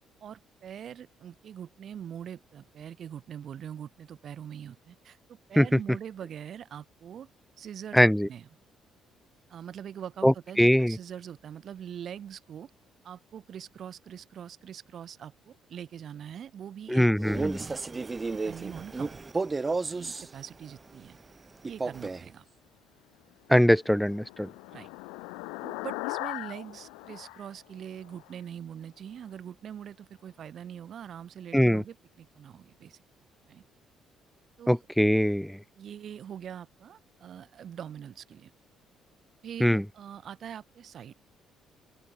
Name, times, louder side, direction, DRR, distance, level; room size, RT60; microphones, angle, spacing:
voice 1, 0.2-7.3 7.6-8.0 8.3-8.4 9.5-12.7 13.0-17.3 17.7-19.2 19.7-21.2 21.6-22.4 24.7-24.9 25.6-33.0 33.5-33.6 34.6-34.8 35.7-38.5 39.4-41.1, right 9 dB, 60° right, 1.0 m, -43 dB
voice 2, 7.9-8.3 10.2-11.0 16.9-17.6 23.5-24.5 31.5-31.8 34.7-35.6 39.6-39.8, equal, ahead, 0.4 m, -22 dB
Male speech man speaking, 17.2-20.3 21.6-22.3, right 3 dB, 30° right, 0.9 m, -32 dB
sound 1, 23.7-28.3, left 31 dB, 85° left, 0.5 m, -39 dB
open air
hypercardioid pair, 55°, 0 cm